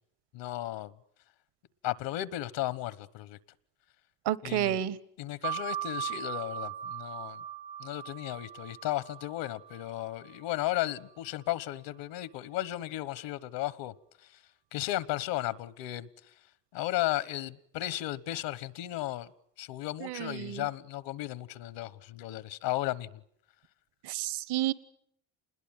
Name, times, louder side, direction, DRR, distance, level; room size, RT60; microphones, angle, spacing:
voice 1, 0.3-0.9 1.8-3.4 4.4-4.9 5.2-7.4 7.8-13.9 14.2-14.3 14.7-16.1 16.7-19.3 19.6-23.2, left 15 dB, 75° left, 1.2 m, -35 dB
voice 2, 4.2-5.0 20.0-20.6 24.0-24.7, right 12 dB, 60° right, 1.4 m, -30 dB
sound 1, 5.4-10.6, right 10 dB, 80° right, 5.4 m, -39 dB
27.5 x 21.0 x 9.0 m
supercardioid pair, 95°, 44 cm